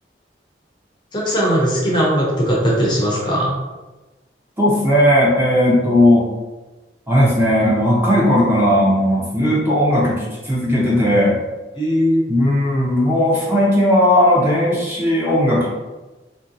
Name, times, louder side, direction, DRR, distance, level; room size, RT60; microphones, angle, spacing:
voice 1, 1.1-3.6 11.7-12.2, equal, 25° left, -4 dB, 0.6 m, -18 dB
voice 2, 4.6-6.3 7.1-11.4 12.3-15.7, left 1 dB, 15° right, -6 dB, 0.7 m, -16 dB
3.3 x 2.6 x 2.6 m, 1.2 s
head